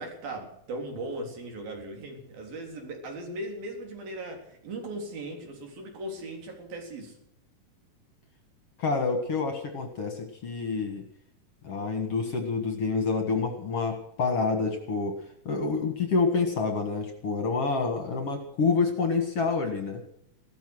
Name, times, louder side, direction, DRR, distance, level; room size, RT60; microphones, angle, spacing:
voice 1, 0.0-7.2, right 1 dB, 75° right, 2 dB, 5.5 m, -38 dB
voice 2, 8.8-11.1 11.6-20.0, left 4 dB, 50° left, 5 dB, 2.2 m, -28 dB
16.0 x 13.5 x 6.3 m, 0.73 s
omnidirectional pair, 4.2 m